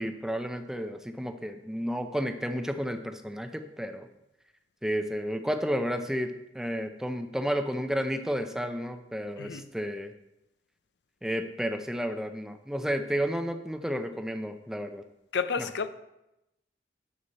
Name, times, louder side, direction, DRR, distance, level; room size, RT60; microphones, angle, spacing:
voice 1, 0.0-4.1 4.8-10.1 11.2-15.0 15.6-15.7, equal, 5° right, 7 dB, 0.6 m, -32 dB
voice 2, 15.3-15.9, left 5 dB, 75° left, 12 dB, 0.5 m, -30 dB
9.7 x 7.1 x 4.1 m, 0.91 s
head